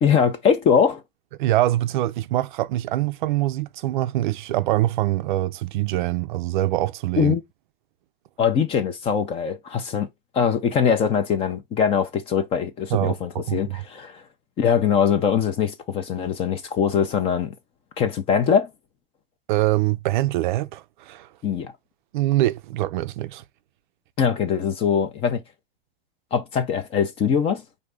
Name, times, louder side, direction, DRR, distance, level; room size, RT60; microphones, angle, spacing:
voice 1, 0.0-1.0 7.2-7.4 8.4-10.1 10.3-14.2 14.6-17.5 18.0-18.7 21.4-21.7 24.2-25.4 26.3-27.6, left 7 dB, 20° left, 0.5 m, -22 dB
voice 2, 1.4-7.4 12.9-13.8 19.5-21.3 22.1-23.4, right 15 dB, 55° right, 0.4 m, -24 dB
4.8 x 2.7 x 3.3 m
supercardioid pair, 145°, 30 cm